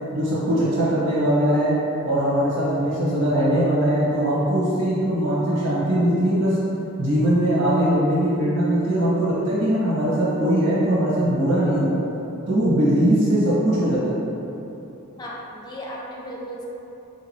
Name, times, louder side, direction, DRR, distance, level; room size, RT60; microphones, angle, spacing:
voice 1, 0.1-1.7 2.0-6.6 7.0-12.0 12.5-14.2, right 1 dB, 60° right, -10 dB, 1.1 m, -21 dB
voice 2, 15.2-16.6, equal, 20° left, -3 dB, 0.4 m, -35 dB
4.5 x 2.8 x 3.1 m, 3.0 s
head